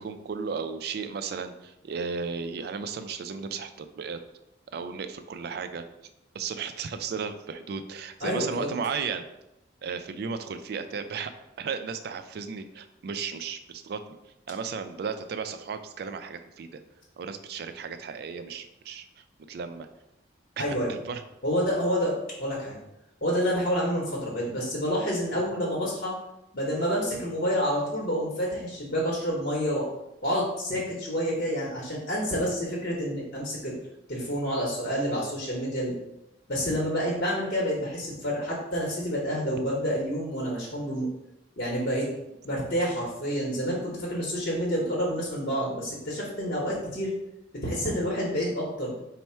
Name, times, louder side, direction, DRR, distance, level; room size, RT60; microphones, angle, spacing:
voice 1, 0.0-4.2 4.7-5.8 6.3-9.3 9.8-11.3 11.6-14.0 14.5-16.8 17.2-19.9 20.6-21.2, right 5 dB, 55° right, 9 dB, 0.3 m, -34 dB
voice 2, 8.2-8.7 20.6-20.9 21.4-22.1 22.4-22.8 23.2-26.1 26.5-29.8 30.2-33.8 34.1-36.0 36.5-41.1 41.6-42.1 42.4-47.1 47.6-49.0, equal, 50° left, -4 dB, 0.9 m, -28 dB
4.4 x 2.1 x 4.3 m, 0.89 s
head